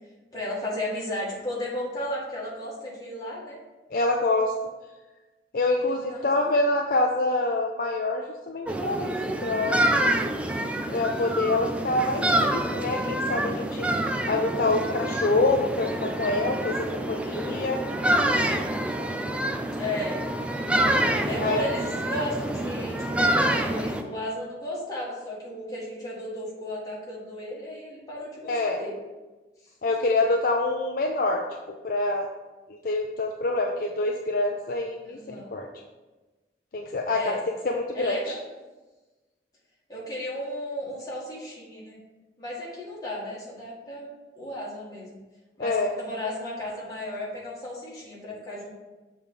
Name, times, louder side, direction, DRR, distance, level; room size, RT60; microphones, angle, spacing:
voice 1, 0.3-3.6 6.1-6.3 19.7-20.2 21.2-28.9 29.8-29.9 35.0-35.5 37.1-37.5 37.9-38.4 39.9-42.0 42.4-44.1 44.4-45.2 45.6-48.7, left 1 dB, 20° left, -6 dB, 2.0 m, -34 dB
voice 2, 3.9-4.5 5.5-9.2 9.4-9.8 10.9-13.9 14.3-17.8 21.4-21.6 28.5-28.8 29.8-32.3 32.7-35.7 36.7-38.2 45.6-45.9, left 2 dB, 55° left, 2 dB, 0.5 m, -26 dB
sound 1, 8.7-24.0, right 1 dB, 5° right, 0.4 m, -27 dB
7.0 x 3.4 x 5.7 m, 1.2 s
head